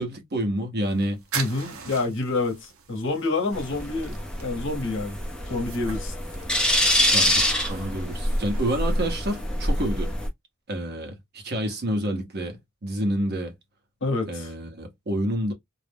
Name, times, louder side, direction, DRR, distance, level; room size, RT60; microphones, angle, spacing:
voice 1, 0.0-1.2 7.1-7.4 7.7-10.1 10.7-13.5 14.3-15.5, right 1 dB, 50° right, 0.9 m, -28 dB
sound 1, 0.8-9.5, right 6 dB, 75° right, 0.7 m, -41 dB
voice 2, 1.3-5.2 5.4-6.1 14.0-14.5, left 3 dB, 60° left, 0.9 m, -28 dB
sound 2, 3.5-10.3, left 1 dB, 5° left, 0.5 m, -25 dB
2.4 x 2.0 x 3.4 m
head